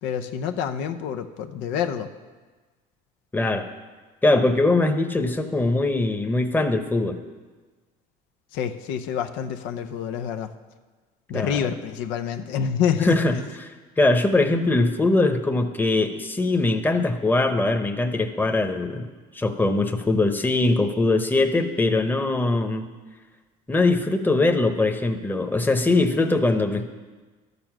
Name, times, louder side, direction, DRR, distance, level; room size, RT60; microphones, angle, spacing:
voice 1, 0.0-2.1 8.5-10.5 11.3-13.2, left 8 dB, 80° left, 7 dB, 0.7 m, -27 dB
voice 2, 3.3-3.7 4.2-7.2 11.3-11.6 13.0-19.1 19.3-22.9 23.7-26.9, left 2 dB, 10° left, 6 dB, 0.9 m, -22 dB
12.5 x 6.9 x 6.1 m, 1.3 s
supercardioid pair, 95°, 19 cm